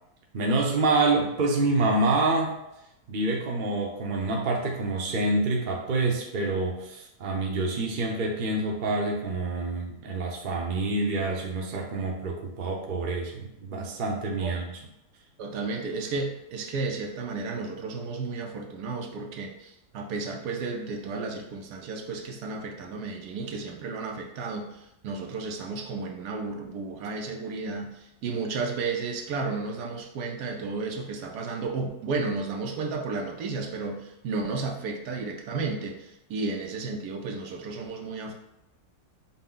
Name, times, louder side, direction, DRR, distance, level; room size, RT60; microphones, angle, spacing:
voice 1, 0.3-2.5 3.1-14.8, right 2 dB, 45° right, 0 dB, 0.7 m, -27 dB
voice 2, 15.4-38.3, right 4 dB, 80° right, 3 dB, 1.2 m, -33 dB
5.5 x 2.1 x 3.8 m, 0.86 s
omnidirectional pair, 1.7 m